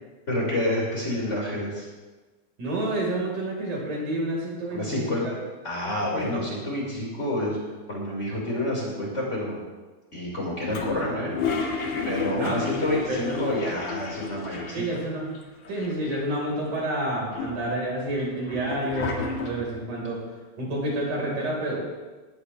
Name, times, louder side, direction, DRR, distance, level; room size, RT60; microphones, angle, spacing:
voice 1, 0.3-1.9 4.7-5.3 5.6-7.6 7.9-9.6 10.1-11.3 12.0-14.8, left 1 dB, 20° left, -4 dB, 6.1 m, -28 dB
voice 2, 2.6-5.3 6.1-6.3 12.3-12.5 13.1-13.5 14.7-15.3 15.7-20.2 20.6-21.8, right 1 dB, 90° right, -3 dB, 6.8 m, -29 dB
Toilet flush, 10.7-15.1 15.3-15.4 15.6-16.5 17.0-19.8, left 5 dB, 70° left, 3.2 m, -32 dB
21.0 x 18.5 x 3.6 m, 1.2 s
omnidirectional pair, 3.4 m